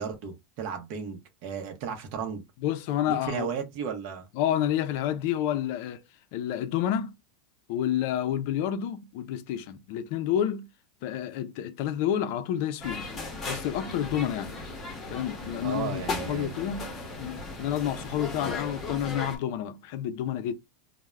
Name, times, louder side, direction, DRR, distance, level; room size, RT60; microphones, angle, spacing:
voice 1, 0.0-2.4 3.1-4.3 15.6-16.5, right 6 dB, 55° right, 0.6 m, -34 dB
voice 2, 2.6-3.5 4.3-6.0 6.3-7.1 7.7-10.7 11.0-13.1 13.5-14.6 15.1-16.9 17.2-20.5, left 10 dB, 60° left, 0.4 m, -29 dB
sound 1, 12.8-19.4, left 3 dB, 25° left, 0.8 m, -36 dB
2.3 x 2.0 x 3.1 m
supercardioid pair, 145°, 0 cm